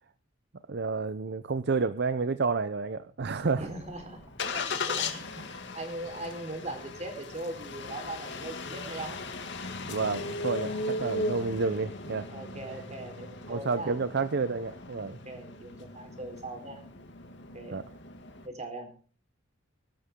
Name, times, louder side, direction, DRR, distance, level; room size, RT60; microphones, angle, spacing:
voice 1, 0.7-3.6 9.9-12.3 13.5-15.2 17.7-17.8, right 4 dB, 55° right, 13 dB, 0.6 m, -30 dB
Engine starting, 3.2-18.5, left 3 dB, 60° left, 2.2 m, -38 dB
voice 2, 3.6-4.2 4.5-9.2 12.3-14.0 15.1-16.8 17.5-17.8 18.4-18.9, right 2 dB, 35° right, 5 dB, 4.2 m, -40 dB
21.0 x 12.5 x 3.8 m, 0.41 s
head